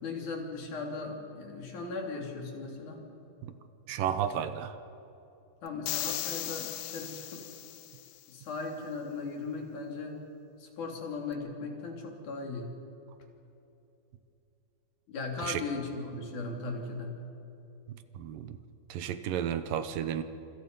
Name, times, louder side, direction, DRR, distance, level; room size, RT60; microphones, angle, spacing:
voice 1, 0.0-3.0 5.6-7.4 8.3-10.2 10.6-12.7 15.1-17.2, left 3 dB, 60° left, 1 dB, 4.5 m, -38 dB
voice 2, 3.9-4.8 15.4-15.6 17.9-18.6 18.9-20.2, right 9 dB, 75° right, 10 dB, 2.6 m, -33 dB
sound 1, 5.9-8.1, left 14 dB, 80° left, 2.4 m, -37 dB
29.0 x 26.5 x 5.4 m, 2.9 s
omnidirectional pair, 4.1 m